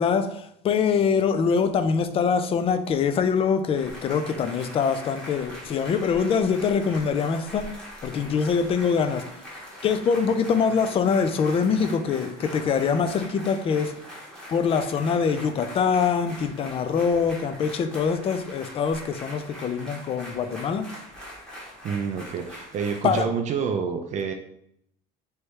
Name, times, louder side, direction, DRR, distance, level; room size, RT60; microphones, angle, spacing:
voice 1, 0.0-7.7 8.0-9.2 9.8-13.9 14.5-20.9 23.0-23.2, left 6 dB, 35° left, 0.4 m, -24 dB
sound 1, 3.8-23.2, equal, 5° left, 1.2 m, -42 dB
voice 2, 21.8-24.3, right 6 dB, 45° right, 0.4 m, -28 dB
3.3 x 3.0 x 4.6 m
cardioid pair, 145°, 17 cm